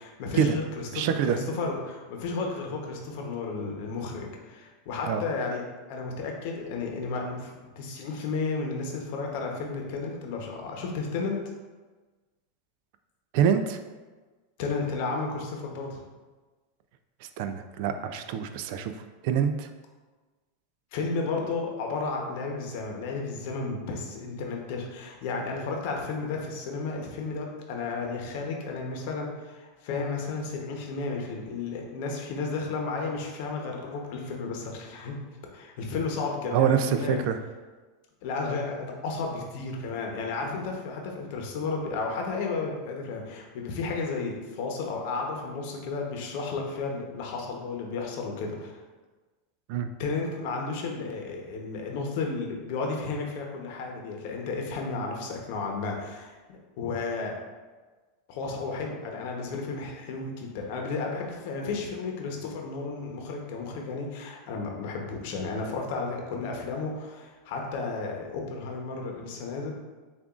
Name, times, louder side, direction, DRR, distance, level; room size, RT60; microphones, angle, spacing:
voice 1, 0.0-11.4 14.6-16.0 20.9-35.1 35.5-37.2 38.2-48.8 50.0-57.4 58.3-69.7, left 4 dB, 60° left, 1 dB, 0.8 m, -33 dB
voice 2, 0.9-1.4 5.1-5.2 13.3-13.8 17.4-18.9 19.2-19.7 36.5-37.4 49.7-49.9, right 8 dB, 60° right, 8 dB, 0.3 m, -25 dB
6.7 x 2.5 x 2.4 m, 1.3 s
hypercardioid pair, 115°, 0 cm